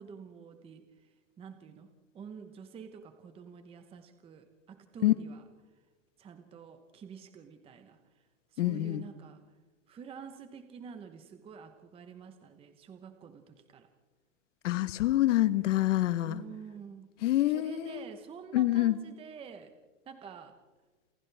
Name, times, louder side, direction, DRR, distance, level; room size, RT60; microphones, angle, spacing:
voice 1, 0.0-1.9 2.1-5.4 6.2-9.4 9.9-13.9 16.3-17.1 17.5-19.7 20.0-20.5, right 6 dB, 15° right, 1.0 m, -48 dB
voice 2, 8.6-9.0 14.6-16.4 17.2-18.0 18.5-19.0, left 15 dB, 70° left, 1.3 m, -26 dB
29.0 x 28.5 x 3.5 m
supercardioid pair, 155°, 38 cm